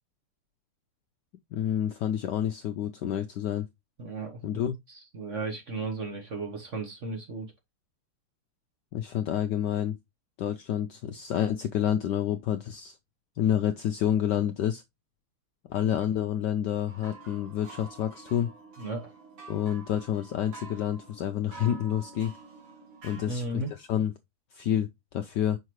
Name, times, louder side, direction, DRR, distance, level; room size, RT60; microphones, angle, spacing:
voice 1, 1.5-3.6 4.4-4.7 8.9-10.0 10.4-13.0 13.4-14.8 15.7-18.5 19.5-22.3 23.0-24.1 24.5-25.6, left 10 dB, 75° left, 1.0 m, -29 dB
voice 2, 4.0-4.4 5.1-7.5 18.8-19.1 23.3-23.7, right 3 dB, 45° right, 1.2 m, -34 dB
sound 1, 16.9-23.7, right 3 dB, 85° right, 3.0 m, -48 dB
5.8 x 5.6 x 3.0 m
omnidirectional pair, 2.4 m